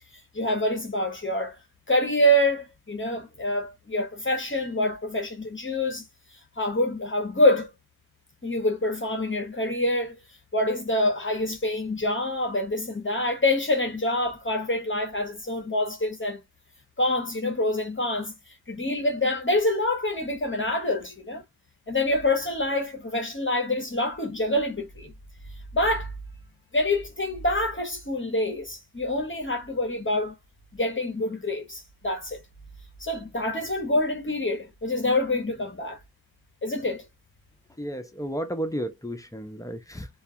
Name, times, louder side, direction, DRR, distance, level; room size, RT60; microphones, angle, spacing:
voice 1, 0.3-1.6 1.9-6.0 6.6-7.7 8.4-10.2 10.5-16.4 17.0-18.3 18.7-21.4 21.9-25.1 25.7-26.1 26.7-30.3 30.7-32.4 33.0-36.0 36.6-37.0, left 1 dB, 30° left, 0.9 m, -26 dB
voice 2, 37.8-40.1, equal, 10° left, 0.5 m, -32 dB
2.3 x 2.3 x 2.7 m
wide cardioid pair, 60°, 38 cm